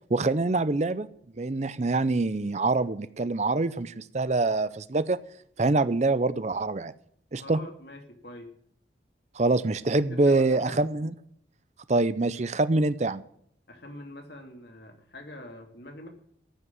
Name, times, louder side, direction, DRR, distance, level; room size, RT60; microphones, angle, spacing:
voice 1, 0.1-1.1 1.4-5.2 5.6-6.9 7.3-7.6 9.4-11.1 11.9-13.2, right 2 dB, 35° right, 15 dB, 0.5 m, -25 dB
voice 2, 7.4-8.5 10.0-10.8 13.7-16.1, left 1 dB, 65° left, 4 dB, 2.6 m, -44 dB
14.0 x 6.2 x 9.5 m, 0.66 s
head